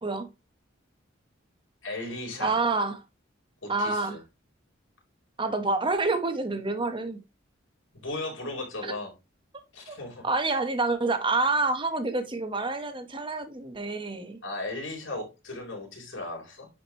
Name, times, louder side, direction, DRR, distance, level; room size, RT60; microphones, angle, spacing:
voice 1, 1.8-2.6 3.6-4.2 7.9-9.1 9.7-10.3 14.4-16.7, left 2 dB, 75° left, 4.2 m, -36 dB
voice 2, 2.4-3.0 3.7-4.2 5.4-7.2 8.8-8.9 9.9-10.0 10.2-14.4, right 3 dB, 25° right, 1.2 m, -27 dB
10.0 x 5.1 x 3.1 m
head